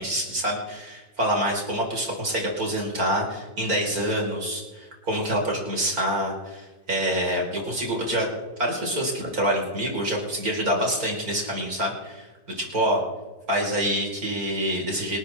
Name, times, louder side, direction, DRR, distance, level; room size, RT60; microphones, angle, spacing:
voice 1, 0.0-8.3 8.6-12.3 12.6-13.0 13.5-15.2, equal, 55° right, -1 dB, 4.6 m, -26 dB
25.5 x 13.0 x 3.4 m, 1.2 s
omnidirectional pair, 1.8 m